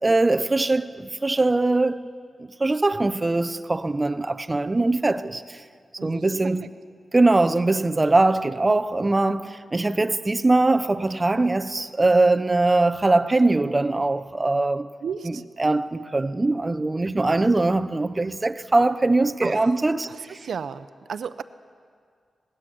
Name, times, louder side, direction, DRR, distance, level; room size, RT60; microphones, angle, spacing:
voice 1, 0.0-2.1 2.6-5.6 6.0-6.6 7.1-14.9 15.2-20.1, right 2 dB, 20° right, 0.6 m, -21 dB
voice 2, 15.0-15.4 19.4-19.7 20.0-21.4, right 6 dB, 70° right, 0.8 m, -34 dB
26.5 x 19.5 x 7.8 m
wide cardioid pair, 175°, 0 cm